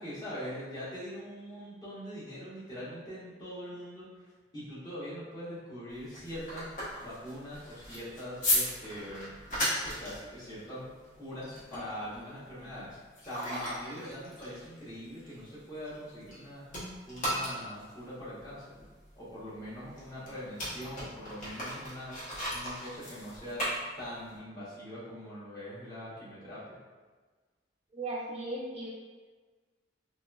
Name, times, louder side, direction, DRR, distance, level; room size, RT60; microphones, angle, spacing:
voice 1, 0.0-4.1 4.5-9.3 9.9-10.9 11.2-18.6 19.2-22.2 22.5-23.6 24.0-26.8, equal, 20° left, -10 dB, 1.0 m, -42 dB
sound 1, 5.9-16.4 16.7-24.4, left 1 dB, 45° left, 0.8 m, -36 dB
voice 2, 27.9-28.9, right 2 dB, 35° right, -5 dB, 0.4 m, -36 dB
2.9 x 2.9 x 2.2 m, 1.4 s
head